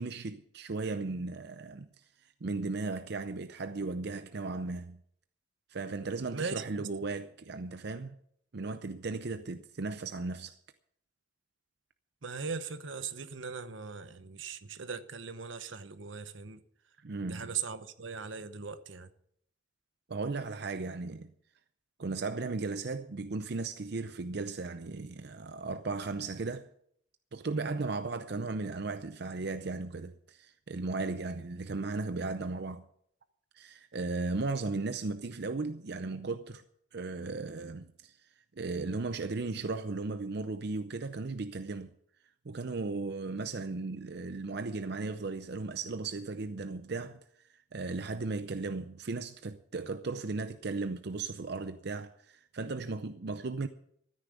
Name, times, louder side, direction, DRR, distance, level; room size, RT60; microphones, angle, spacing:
voice 1, 0.0-5.0 5.7-8.2 8.5-10.6 17.0-17.5 20.1-21.3 22.0-26.7 27.3-32.8 33.5-36.6 36.9-38.3 38.6-41.9 42.4-47.2 47.5-53.7, right 3 dB, 60° right, 0.6 m, -36 dB
voice 2, 6.3-6.8 12.2-16.6 17.3-19.1, right 5 dB, 85° right, 1.0 m, -39 dB
13.5 x 9.9 x 6.9 m
head